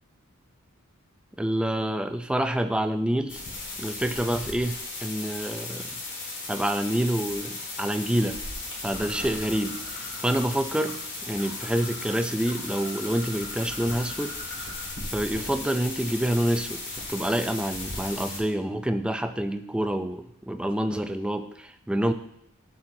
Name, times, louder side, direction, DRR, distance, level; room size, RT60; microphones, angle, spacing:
voice 1, 1.4-3.4 3.8-5.9 6.5-8.4 8.8-11.0 11.3-14.4 15.1-16.8 17.1-22.1, right 1 dB, 5° right, 7 dB, 0.3 m, -27 dB
sound 1, 3.3-18.4, left 2 dB, 55° left, 1.8 m, -36 dB
Bird, 8.9-15.0, left 2 dB, 80° left, 1.6 m, -44 dB
12.5 x 4.2 x 2.7 m, 0.77 s
head